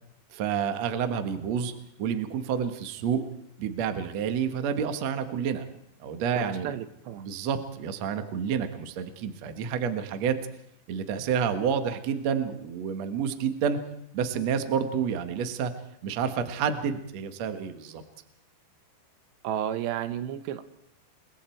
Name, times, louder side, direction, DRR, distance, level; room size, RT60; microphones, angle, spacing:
voice 1, 0.3-1.7 2.0-3.2 3.6-5.7 6.0-6.7 7.2-10.4 10.9-13.8 14.1-15.7 16.0-18.0, right 7 dB, 60° right, 8 dB, 1.9 m, -29 dB
voice 2, 6.4-7.2 19.4-20.6, right 10 dB, 75° right, 11 dB, 3.1 m, -32 dB
28.5 x 22.5 x 4.6 m, 0.74 s
omnidirectional pair, 5.1 m